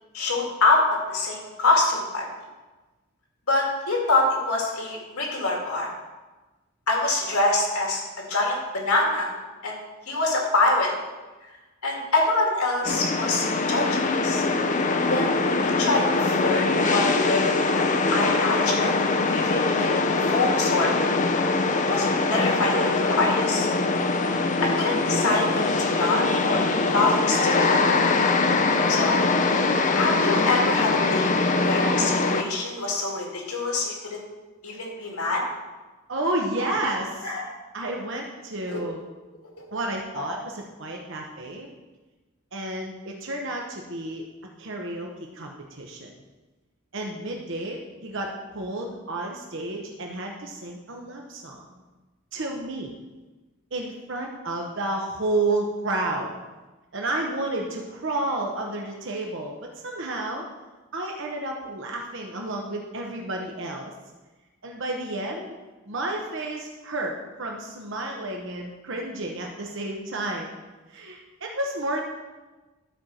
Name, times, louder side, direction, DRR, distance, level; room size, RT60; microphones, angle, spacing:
voice 1, 0.1-0.8 1.1-2.2 3.5-5.9 6.9-8.0 8.3-9.3 9.6-9.8 10.1-10.9 11.8-14.4 15.1-15.3 15.6-19.0 19.2-19.9 20.2-20.9 21.9-23.7 24.6-27.9 28.9-29.2 30.0-31.3 31.6-34.2 34.6-35.4 36.6-36.8 37.2-37.5 38.7-38.8 40.2-40.3, left 2 dB, 85° left, -1 dB, 2.4 m, -25 dB
sound 1, 12.8-32.4, left 3 dB, 35° left, 0.5 m, -23 dB
voice 2, 36.1-37.3 37.7-39.0 39.7-41.7 42.5-44.2 44.6-46.1 46.9-51.8 52.3-52.9 53.7-56.3 56.9-60.4 60.9-63.9 64.6-65.5 65.9-70.5 70.9-72.0, right 2 dB, 60° right, 1 dB, 0.9 m, -31 dB
11.5 x 4.5 x 6.3 m, 1.2 s
head